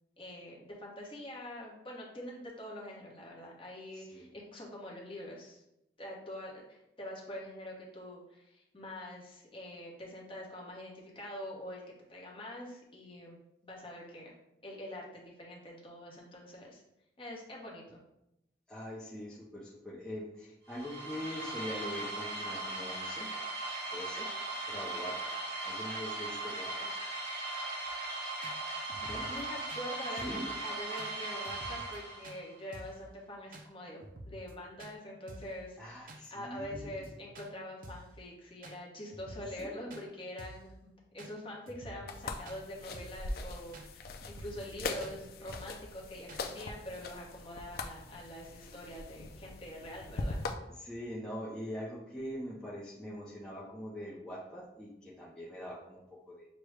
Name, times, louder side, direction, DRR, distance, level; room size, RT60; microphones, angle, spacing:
voice 1, 0.2-5.6 6.0-11.8 12.1-13.4 13.6-14.4 14.6-16.8 17.2-18.0 29.0-50.5, left 1 dB, 30° left, -3 dB, 0.9 m, -45 dB
voice 2, 3.9-4.3 18.7-23.3 23.9-24.3 24.7-26.9 29.0-29.3 30.2-30.5 35.8-37.1 39.6-39.9 50.7-56.5, equal, 5° left, -7 dB, 0.6 m, -43 dB
sound 1, 20.7-32.5, right 2 dB, 70° right, 1.4 m, -38 dB
sound 2, 27.9-28.0 28.4-28.6 28.9-29.4 29.7-29.8 30.2-30.5 31.0-31.1 31.4-32.0 32.2-32.4 32.7-33.0 33.5-33.7 34.0-34.5 34.8-34.9 35.3-35.6 36.1-36.3 36.5-37.1 37.3-37.5 37.8-38.1 38.6-38.8 39.1-39.6 39.9-40.0 40.4-40.7 41.2-41.3 41.7-42.2 42.5-42.6 42.9-43.2 43.7-43.9 44.2-44.7 45.0-45.2 45.5-45.8 46.3-46.5, right 1 dB, 50° right, 0.4 m, -49 dB
sound 3, 42.1-50.5, left 3 dB, 55° left, 0.4 m, -41 dB
6.2 x 2.2 x 3.2 m, 0.86 s
head